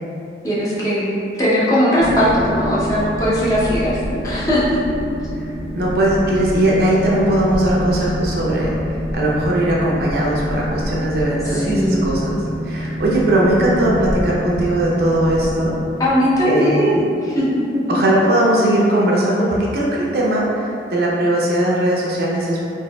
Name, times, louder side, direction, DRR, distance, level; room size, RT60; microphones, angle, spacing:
voice 1, 0.4-1.1 1.4-4.8 11.4-12.1 16.0-17.8, equal, 20° left, -9 dB, 0.6 m, -18 dB
Boat Water vehicle, 2.0-15.8, equal, 60° left, 0.7 m, -26 dB
voice 2, 5.7-8.8 9.1-15.8 16.4-17.0 17.9-22.6, right 1 dB, 60° right, -5 dB, 0.6 m, -19 dB
4.0 x 2.6 x 2.3 m, 2.6 s
head